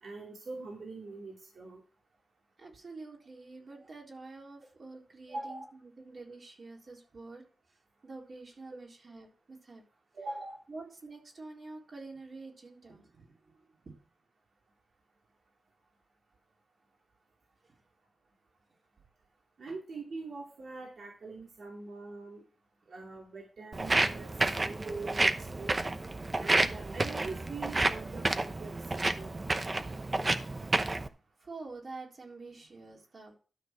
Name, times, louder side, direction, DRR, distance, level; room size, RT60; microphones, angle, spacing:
voice 1, 0.0-1.8 5.3-5.7 10.2-10.6 19.6-22.4 22.9-24.3 24.8-25.7 26.4-29.3, right 3 dB, 65° right, -2 dB, 2.5 m, -43 dB
voice 2, 2.6-7.4 8.0-9.8 10.7-13.9 19.7-19.8 31.4-33.3, right 3 dB, 50° right, -1 dB, 3.8 m, -47 dB
Walk footsteps, 23.7-31.1, right 2 dB, 25° right, 0.8 m, -30 dB
12.5 x 6.3 x 4.6 m, 0.37 s
wide cardioid pair, 135°, 0 cm